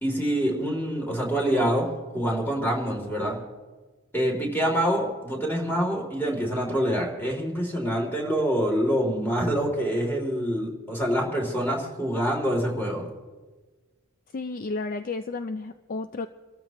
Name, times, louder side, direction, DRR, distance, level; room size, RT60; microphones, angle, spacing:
voice 1, 0.0-1.9 2.1-3.4 4.1-13.0, equal, 10° left, -1 dB, 3.0 m, -26 dB
voice 2, 14.3-16.3, left 3 dB, 40° left, 9 dB, 0.4 m, -32 dB
26.5 x 13.5 x 3.0 m, 1.3 s
head